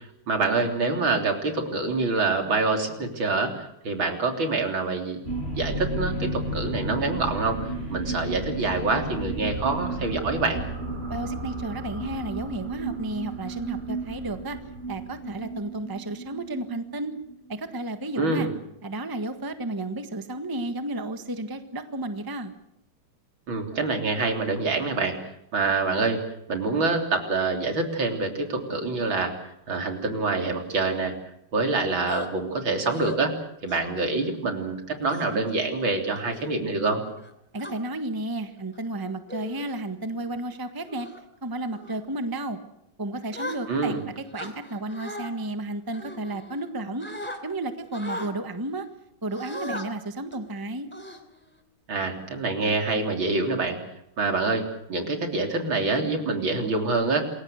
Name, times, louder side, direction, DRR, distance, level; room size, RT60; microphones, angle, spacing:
voice 1, 0.3-5.2 5.5-10.6 18.2-18.5 23.5-25.2 25.5-26.2 26.5-29.3 29.7-31.1 31.5-33.4 33.6-37.0 43.7-44.0 51.9-53.8 54.2-57.2, right 3 dB, 70° right, 4 dB, 4.1 m, -26 dB
sound 1, 5.2-18.1, right 2 dB, 30° right, 5.9 m, -33 dB
voice 2, 11.1-14.6 14.9-17.1 17.5-18.5 18.8-22.5 37.5-41.1 41.4-42.6 43.0-47.1 47.4-48.9 49.2-50.9, right 2 dB, 10° right, 8 dB, 1.4 m, -32 dB
sound 2, 32.1-32.3 32.8-33.2 33.7-34.0 35.1-35.5 36.1-36.4 37.2-37.7 38.6-38.8 39.3-39.7 40.1-40.4 40.9-41.2 41.7-42.0 43.3-44.0 44.3-45.3 45.9-46.7 47.0-47.4 47.9-48.3 49.3-49.9 50.3-50.5 50.9-51.6, left 1 dB, 5° left, 3.0 m, -37 dB
28.0 x 22.0 x 6.6 m, 0.78 s
omnidirectional pair, 2.3 m